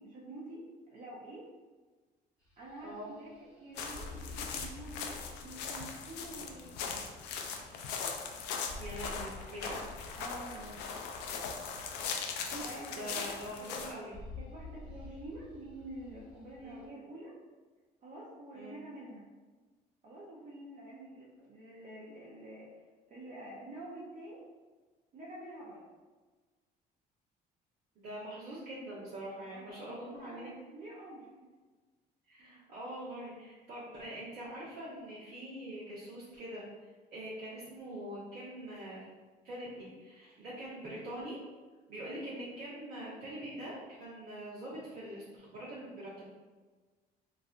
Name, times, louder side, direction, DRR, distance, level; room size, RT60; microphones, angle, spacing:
voice 1, 0.0-1.5 2.6-7.1 10.2-10.8 12.5-13.7 14.4-17.4 18.0-19.2 20.0-24.5 25.1-25.8 29.5-31.3, right 1 dB, 45° right, -5 dB, 0.6 m, -48 dB
sound 1, 2.4-12.9 13.2-13.7 14.0-16.9, left 3 dB, 5° right, 1.0 m, -50 dB
sound 2, 3.7-13.9, left 5 dB, 90° left, 0.4 m, -40 dB
voice 2, 8.8-9.8 12.4-12.5 12.9-14.2 16.6-16.8 18.5-18.8 27.9-30.5 32.3-39.1 39.4-41.4 41.9-46.3, right 1 dB, 75° right, -11 dB, 1.2 m, -44 dB
3.2 x 2.4 x 2.4 m, 1.3 s
cardioid pair, 110°, 17 cm